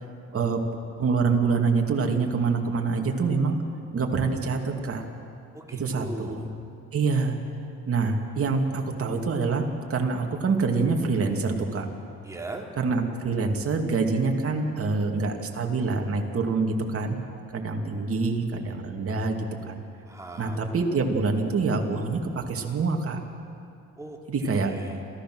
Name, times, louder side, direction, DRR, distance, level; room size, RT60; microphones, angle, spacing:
voice 1, 1.0-3.6 3.9-5.1 5.8-6.5 6.9-7.4 7.9-9.6 9.9-11.9 12.8-17.2 17.5-19.8 20.4-23.2 24.3-24.7, right 4 dB, 50° right, 2 dB, 2.6 m, -26 dB
voice 2, 5.5-6.5 12.2-12.7 20.0-20.6 24.0-25.0, right 2 dB, 10° right, 0 dB, 3.1 m, -39 dB
27.5 x 15.0 x 6.3 m, 2.5 s
cardioid pair, 90°, 30 cm